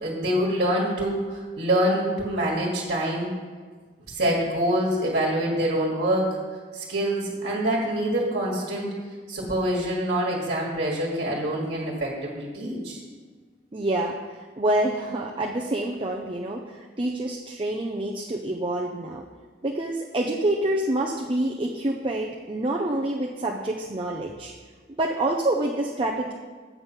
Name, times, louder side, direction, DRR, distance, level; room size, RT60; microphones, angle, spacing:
voice 1, 0.0-3.3 4.1-6.4 6.7-8.9 9.3-13.0, right 1 dB, 55° right, -3 dB, 1.6 m, -25 dB
voice 2, 13.7-19.2 19.6-24.5 24.9-26.3, right 1 dB, 30° right, -1 dB, 0.6 m, -27 dB
8.0 x 5.5 x 7.3 m, 1.5 s
head